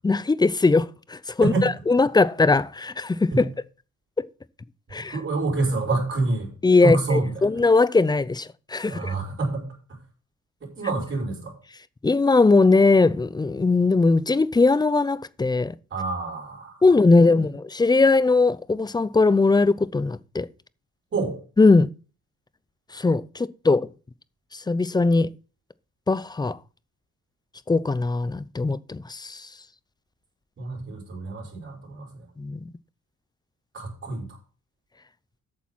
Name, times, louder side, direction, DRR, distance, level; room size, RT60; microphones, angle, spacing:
voice 1, 0.0-3.4 4.2-4.3 4.9-5.1 6.6-9.1 12.0-15.7 16.8-20.5 21.6-21.9 22.9-23.9 24.7-25.3 26.1-26.6 27.7-29.4 32.4-32.6, left 3 dB, 15° left, 0.5 m, -20 dB
voice 2, 5.0-6.5 6.8-7.6 8.9-10.0 10.6-11.5 15.9-16.8 17.1-17.5 21.1-21.4 30.6-32.3 33.7-34.4, right 3 dB, 40° right, 5.4 m, -27 dB
8.5 x 7.0 x 6.0 m
cardioid pair, 90°, 30 cm